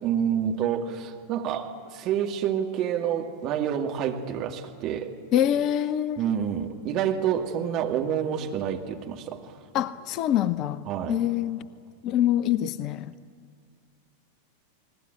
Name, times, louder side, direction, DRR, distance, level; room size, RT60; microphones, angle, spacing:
voice 1, 0.0-5.1 6.2-9.6 10.9-11.2, right 9 dB, 35° right, 2.3 m, -28 dB
voice 2, 5.3-6.2 9.7-10.8 11.1-11.6 12.0-13.1, left 11 dB, 35° left, 0.7 m, -25 dB
28.5 x 20.5 x 8.2 m
figure-of-eight pair, 90°, 0 cm